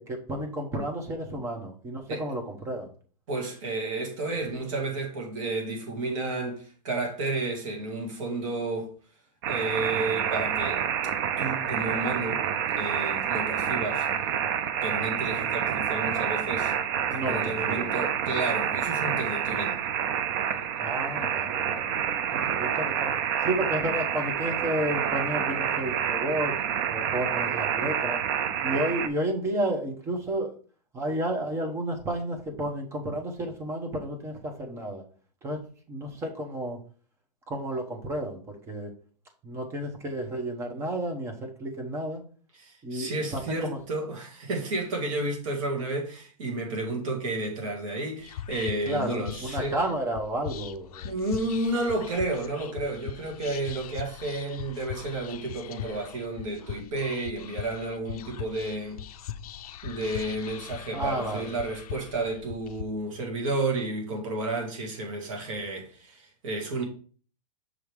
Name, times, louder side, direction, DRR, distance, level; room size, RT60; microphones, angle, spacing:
voice 1, 0.0-2.9 17.1-17.4 17.7-18.1 20.8-21.9 22.3-23.1 23.4-26.6 26.9-28.2 28.6-30.5 30.9-35.0 35.4-35.6 35.9-36.8 37.5-38.9 39.4-42.2 42.8-43.8 48.9-51.1 60.9-61.5, right 1 dB, 15° right, 0.9 m, -31 dB
voice 2, 3.3-8.9 9.5-10.8 11.4-12.4 12.8-14.1 14.8-16.7 17.1-19.8 42.6-49.8 51.0-59.0 59.8-66.8, right 2 dB, 50° right, 1.9 m, -31 dB
sound 1, 9.4-29.1, right 9 dB, 35° right, 0.4 m, -28 dB
Whispering, 48.2-62.8, left 10 dB, 60° left, 0.5 m, -40 dB
6.3 x 3.5 x 4.6 m
hypercardioid pair, 160°, 21 cm